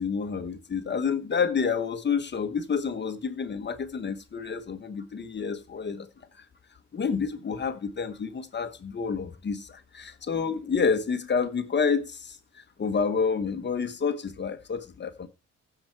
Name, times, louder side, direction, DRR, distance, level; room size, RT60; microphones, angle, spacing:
voice 1, 0.0-6.1 6.4-6.5 6.9-15.3, left 5 dB, 35° left, 1.2 m, -29 dB
15.0 x 5.9 x 4.6 m
cardioid pair, 90°, 30 cm